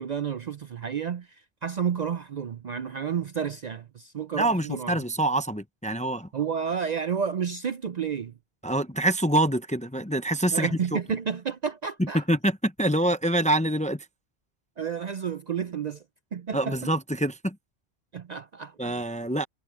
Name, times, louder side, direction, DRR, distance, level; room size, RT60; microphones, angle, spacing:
voice 1, 0.0-5.0 6.3-8.3 10.5-12.2 14.8-16.0 16.3-16.9 18.1-19.0, right 7 dB, 50° right, 0.6 m, -31 dB
voice 2, 4.4-6.3 8.6-10.8 12.0-14.1 16.5-17.6 18.8-19.4, right 1 dB, 10° left, 0.6 m, -25 dB
omnidirectional pair, 1.1 m